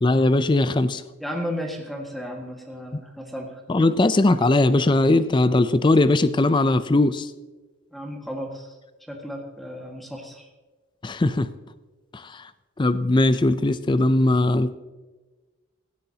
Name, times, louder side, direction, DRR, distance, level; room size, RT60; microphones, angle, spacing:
voice 1, 0.0-1.0 2.9-3.0 3.7-7.3 11.0-11.5 12.1-12.4 12.8-14.8, left 2 dB, 20° left, 13 dB, 0.4 m, -19 dB
voice 2, 1.2-3.6 7.9-8.7 9.1-10.5, equal, ahead, 0 dB, 1.7 m, -34 dB
16.5 x 13.0 x 2.9 m, 1.3 s
head